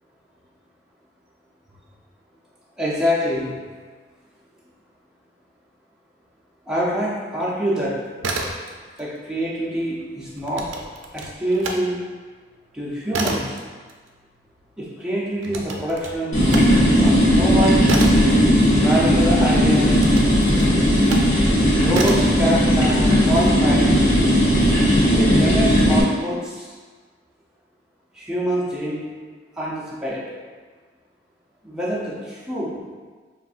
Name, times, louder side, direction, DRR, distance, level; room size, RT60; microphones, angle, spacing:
voice 1, 2.8-3.6 6.7-8.0 9.0-10.7 11.1-12.0 12.7-13.5 14.8-16.4 17.0-17.8 18.7-20.0 21.8-23.9 25.0-26.8 28.1-29.0 29.6-30.3 31.6-32.8, equal, 5° right, -7 dB, 0.5 m, -25 dB
sound 1, 8.0-9.0 9.3-11.8 12.2-19.2 19.9-21.3 21.9-22.4, right 3 dB, 85° right, 0.4 m, -31 dB
sound 2, 16.3-26.0, equal, 35° left, 1.3 m, -16 dB
5.7 x 2.4 x 2.4 m, 1.5 s
head